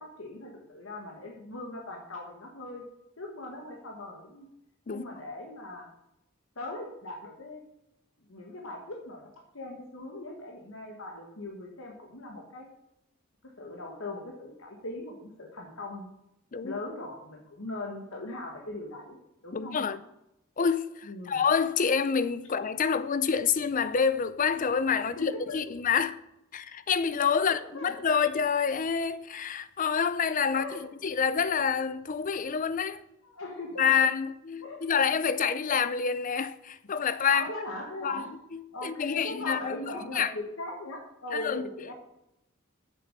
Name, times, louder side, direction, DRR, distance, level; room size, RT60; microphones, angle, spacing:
voice 1, 0.0-2.8 3.2-4.5 4.9-5.9 6.5-7.6 8.3-12.7 13.4-16.1 16.6-19.2 19.4-20.0 21.0-21.4 25.0-25.6 27.4-27.9 30.5-30.8 33.2-34.0 34.6-34.8 37.3-38.3 38.7-41.9, left 2 dB, 75° left, 1.5 m, -40 dB
voice 2, 19.5-20.0 20.6-26.2 26.5-33.0 33.8-37.5 38.0-38.2 38.5-40.3 41.3-41.6, left 6 dB, 40° left, 0.5 m, -27 dB
7.0 x 6.9 x 6.5 m
head